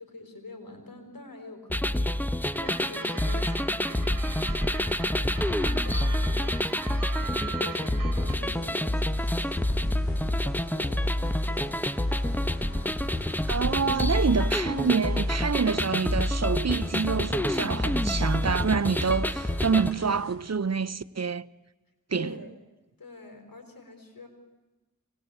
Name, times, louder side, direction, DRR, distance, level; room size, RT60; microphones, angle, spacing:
voice 1, 0.0-6.8 7.2-11.9 22.1-22.5 23.0-24.3, left 2 dB, 90° left, 5.1 m, -46 dB
sound 1, 1.7-19.9, left 1 dB, 5° left, 1.0 m, -27 dB
sound 2, 2.5-8.4, right 6 dB, 75° right, 1.6 m, -41 dB
sound 3, 8.2-20.4, left 2 dB, 40° left, 5.8 m, -46 dB
voice 2, 13.5-21.5 22.1-22.3, right 5 dB, 50° right, 0.7 m, -27 dB
25.5 x 20.5 x 8.5 m
cardioid pair, 40°, 33 cm